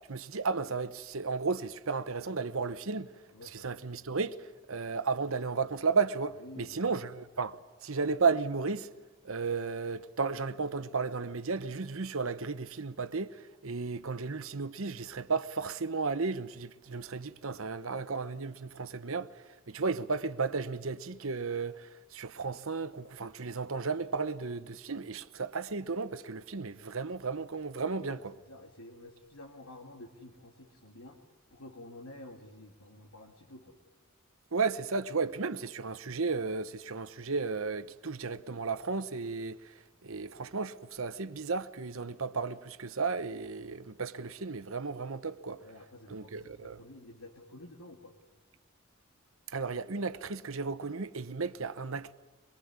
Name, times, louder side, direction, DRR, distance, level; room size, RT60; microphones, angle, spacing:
voice 1, 0.1-3.1 3.5-8.9 9.2-28.3 34.5-39.7 40.0-45.6 46.1-46.8 49.5-52.1, right 4 dB, 70° right, 1.0 m, -34 dB
voice 2, 6.4-7.0 27.9-31.2 31.5-33.8 45.6-48.2, left 1 dB, 85° left, 2.2 m, -50 dB
23.5 x 22.5 x 9.6 m
head